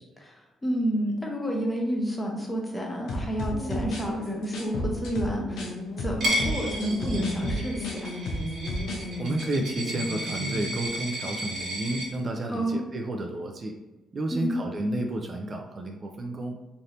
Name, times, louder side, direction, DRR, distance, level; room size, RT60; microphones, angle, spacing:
voice 1, 0.2-5.7 6.0-8.1 12.5-12.8 14.3-14.6, equal, 20° left, 0 dB, 0.8 m, -30 dB
sound 1, 3.1-5.7 6.0-9.0 9.3-9.5, left 1 dB, 80° left, 0.7 m, -32 dB
sound 2, 3.5-10.9, equal, 35° left, 1.5 m, -36 dB
Coin (dropping), 6.2-12.1, equal, 60° right, 1.3 m, -33 dB
voice 2, 9.2-13.7 14.1-16.6, right 1 dB, 40° right, 3 dB, 0.4 m, -31 dB
3.3 x 2.7 x 2.6 m, 1.1 s
cardioid pair, 90°, 0 cm